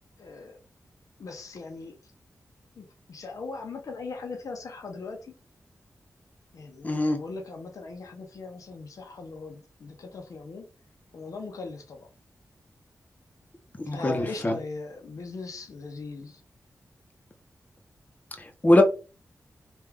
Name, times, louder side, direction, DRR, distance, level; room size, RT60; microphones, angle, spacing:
voice 1, 0.2-0.6 1.2-1.9 2.8-5.3 6.5-10.7 11.1-12.1 13.9-16.4, left 3 dB, 80° left, 0.8 m, -39 dB
voice 2, 6.8-7.2 13.8-14.6 18.4-18.8, left 1 dB, 25° left, 0.9 m, -22 dB
3.5 x 2.6 x 3.4 m
cardioid pair, 60°, 6 cm